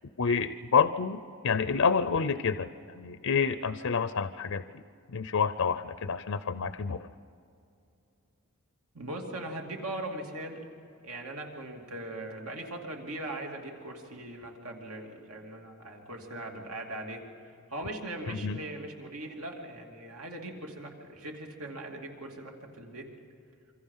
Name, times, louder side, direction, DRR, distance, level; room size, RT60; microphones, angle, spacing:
voice 1, 0.2-1.2 1.4-4.8 5.1-7.1 18.3-18.6, left 5 dB, 75° left, 12 dB, 0.6 m, -28 dB
voice 2, 8.9-10.6 11.0-23.1, right 1 dB, 85° right, 1 dB, 2.9 m, -40 dB
27.0 x 25.0 x 5.7 m, 2.6 s
head